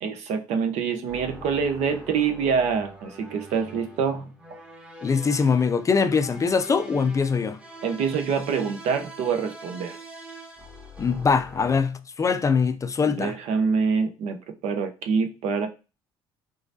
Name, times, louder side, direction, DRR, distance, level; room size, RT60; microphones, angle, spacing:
voice 1, 0.0-4.3 7.8-10.0 13.1-14.4 14.6-15.7, right 6 dB, 70° right, 0.7 m, -25 dB
sound 1, 1.1-11.8, right 1 dB, 10° right, 1.1 m, -44 dB
voice 2, 5.0-7.6 11.0-13.3, left 5 dB, 25° left, 0.4 m, -22 dB
3.8 x 3.1 x 2.6 m
supercardioid pair, 70°, 12 cm